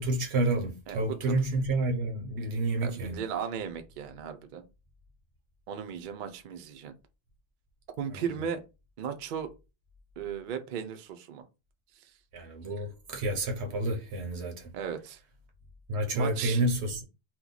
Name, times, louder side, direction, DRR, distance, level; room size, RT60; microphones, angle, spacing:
voice 1, 0.0-3.2 12.3-14.6 15.9-17.0, right 2 dB, 90° right, 1.1 m, -29 dB
voice 2, 0.9-1.4 2.8-4.6 5.7-6.9 8.0-8.6 9.0-9.5 10.2-11.4 14.7-15.2 16.1-16.6, right 7 dB, 60° right, 0.6 m, -36 dB
2.9 x 2.2 x 3.8 m
omnidirectional pair, 1.1 m